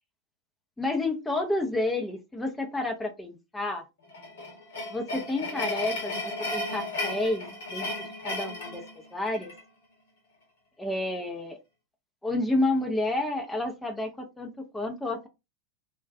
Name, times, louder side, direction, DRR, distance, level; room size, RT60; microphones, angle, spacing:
voice 1, 0.8-3.8 4.9-9.5 10.8-11.6 12.2-15.3, left 2 dB, 5° left, 4 dB, 0.4 m, -30 dB
sound 1, 4.1-9.6, left 2 dB, 60° left, 0.9 m, -34 dB
2.3 x 2.2 x 2.4 m, 0.25 s
figure-of-eight pair, 90°, 0 cm